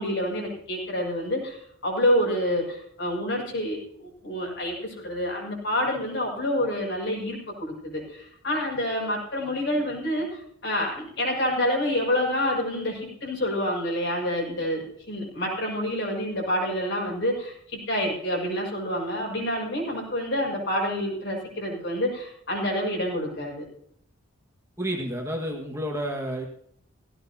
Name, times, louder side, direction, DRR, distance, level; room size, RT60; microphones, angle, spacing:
voice 1, 0.0-23.6, equal, 60° left, -1 dB, 6.2 m, -28 dB
voice 2, 24.8-26.5, equal, 15° right, 0 dB, 1.8 m, -30 dB
16.5 x 16.5 x 2.9 m, 0.68 s
head